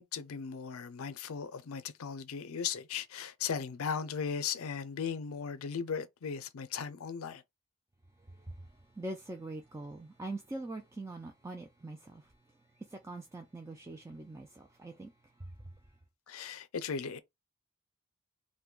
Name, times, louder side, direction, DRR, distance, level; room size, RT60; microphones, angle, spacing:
voice 1, 0.0-7.4 16.3-17.2, left 6 dB, 90° left, 0.5 m, -37 dB
voice 2, 8.3-12.3 12.8-15.1 15.4-15.5, right 2 dB, 15° right, 0.3 m, -43 dB
2.6 x 2.2 x 3.7 m
head